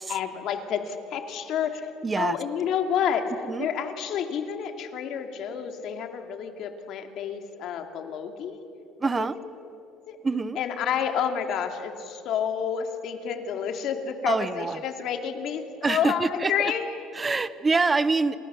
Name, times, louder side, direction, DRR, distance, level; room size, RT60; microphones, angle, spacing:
voice 1, 0.1-1.9 2.2-3.3 3.6-8.7 9.2-9.3 10.1-10.2 10.6-17.1, left 8 dB, 55° left, 5 dB, 2.6 m, -29 dB
voice 2, 2.0-2.4 3.4-3.7 9.0-9.4 10.2-10.6 14.3-14.8 15.8-16.7 17.1-18.4, right 3 dB, 15° right, 15 dB, 0.9 m, -25 dB
29.5 x 28.5 x 7.1 m, 2.7 s
cardioid pair, 145°, 0 cm